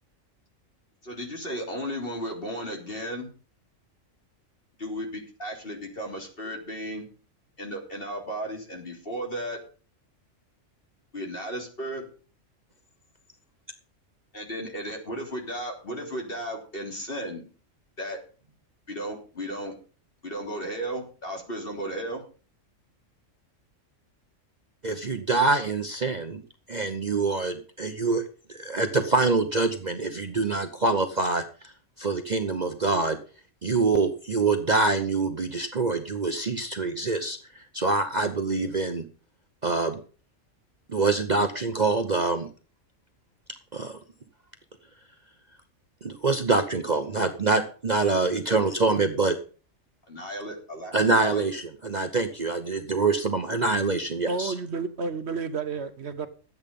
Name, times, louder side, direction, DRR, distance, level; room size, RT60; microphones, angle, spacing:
voice 1, 1.0-3.3 4.8-7.1 7.6-9.6 11.1-12.0 14.3-17.4 18.0-18.2 18.9-19.7 20.2-22.2 48.4-48.6 50.1-51.4, equal, 45° left, 1 dB, 3.5 m, -34 dB
voice 2, 24.8-26.4 26.7-28.2 28.5-31.7 32.0-33.2 33.6-39.0 39.6-40.0 40.9-42.5 43.7-44.0 46.0-49.4 50.9-54.5, right 3 dB, 35° right, 7 dB, 1.0 m, -25 dB
voice 3, 54.3-56.3, right 4 dB, 60° right, 10 dB, 1.1 m, -31 dB
12.0 x 8.8 x 5.3 m, 0.37 s
omnidirectional pair, 1.3 m